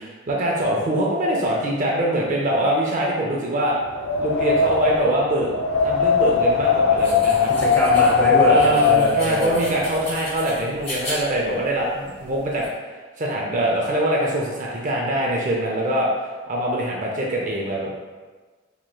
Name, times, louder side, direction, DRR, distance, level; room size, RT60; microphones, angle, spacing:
voice 1, 0.0-3.8 4.2-5.5 5.8-7.5 8.4-12.7 13.2-16.1 16.5-17.9, right 1 dB, 40° right, -2 dB, 0.5 m, -23 dB
Wind, 3.8-9.9, left 4 dB, 75° left, 0.5 m, -19 dB
sound 1, 7.0-12.7, equal, 35° left, 1.5 m, -37 dB
voice 2, 7.6-9.7, left 1 dB, 10° left, -6 dB, 0.9 m, -23 dB
4.5 x 3.0 x 2.3 m, 1.4 s
head